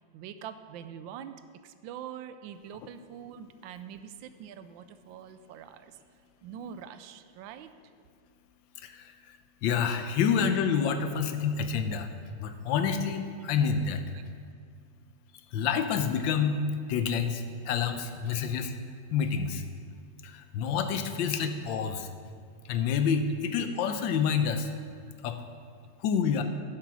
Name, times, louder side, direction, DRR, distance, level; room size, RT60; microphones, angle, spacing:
voice 1, 0.1-1.4 1.6-6.0 6.4-7.7 13.4-13.5 14.1-14.2, right 9 dB, 90° right, 11 dB, 1.3 m, -44 dB
voice 2, 8.8-9.1 9.6-12.1 12.4-14.0 15.5-16.6 16.9-18.7 19.1-19.6 20.2-22.1 22.7-24.7 25.2-25.4 26.0-26.4, left 6 dB, 85° left, 8 dB, 1.4 m, -28 dB
9.1 x 7.6 x 6.1 m, 2.2 s
omnidirectional pair, 2.0 m